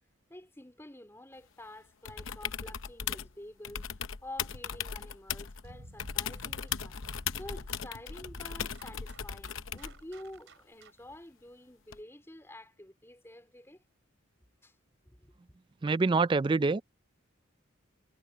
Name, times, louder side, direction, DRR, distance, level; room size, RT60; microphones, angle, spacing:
voice 1, 0.3-3.8 4.2-7.0 7.4-13.8 14.6-14.8 15.0-15.3, left 1 dB, 10° left, 4.0 m, -49 dB
sound 1, 2.0-3.3 3.6-5.6 6.0-10.0 11.9-12.0, left 8 dB, 75° left, 0.8 m, -37 dB
sound 2, 5.6-11.2, right 1 dB, 70° right, 3.5 m, -52 dB
voice 2, 15.8-16.8, right 3 dB, 25° right, 0.3 m, -25 dB
head